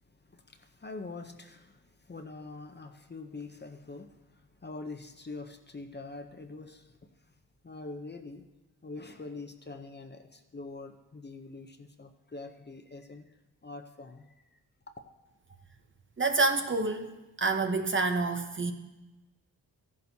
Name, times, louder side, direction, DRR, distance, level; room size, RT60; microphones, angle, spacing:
voice 1, 0.3-1.8 2.1-4.1 4.6-6.9 7.6-8.4 8.8-13.2 13.6-14.2, left 3 dB, 25° left, 6 dB, 0.7 m, -44 dB
voice 2, 16.2-18.7, right 3 dB, 30° right, 6 dB, 0.8 m, -28 dB
15.0 x 11.0 x 2.8 m, 1.1 s
wide cardioid pair, 110°, 39 cm